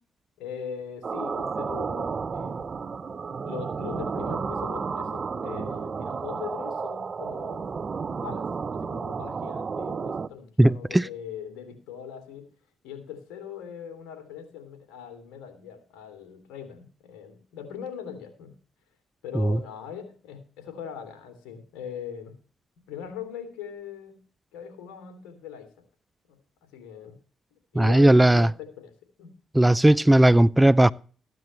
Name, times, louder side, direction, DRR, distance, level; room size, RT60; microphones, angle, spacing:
voice 1, 0.4-2.7 3.4-7.7 8.1-12.5 12.8-18.6 19.2-22.4 22.9-24.2 24.5-25.7 26.3-27.2 27.5-28.9 29.2-29.3, left 8 dB, 85° left, 3.0 m, -40 dB
sound 1, 1.0-10.3, right 5 dB, 45° right, 0.8 m, -32 dB
voice 2, 10.6-11.0 19.4-19.6 27.8-28.5 29.6-30.9, right 1 dB, 10° right, 0.5 m, -17 dB
15.0 x 11.0 x 3.2 m
supercardioid pair, 55°, 0 cm